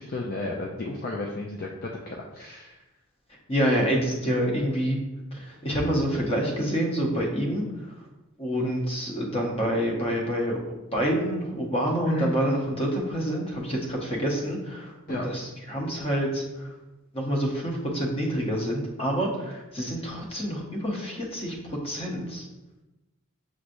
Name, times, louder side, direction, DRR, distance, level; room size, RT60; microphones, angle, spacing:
voice 1, 0.0-2.8 12.1-12.3 15.1-15.3, left 2 dB, 40° left, -1 dB, 0.4 m, -33 dB
voice 2, 3.3-5.0 5.3-8.0 8.4-10.6 10.9-16.7 17.1-22.5, equal, 25° left, -1 dB, 0.8 m, -27 dB
6.2 x 3.0 x 2.6 m, 1.0 s
head